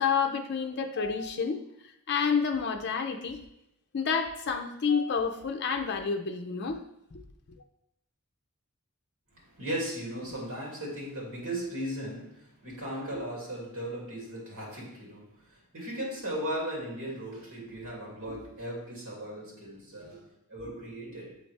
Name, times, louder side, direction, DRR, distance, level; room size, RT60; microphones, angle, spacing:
voice 1, 0.0-1.6 2.1-3.4 3.9-6.8, left 6 dB, 55° left, 5 dB, 0.5 m, -29 dB
voice 2, 9.3-21.4, right 1 dB, 80° right, -3 dB, 2.5 m, -37 dB
7.0 x 4.2 x 3.3 m, 0.82 s
head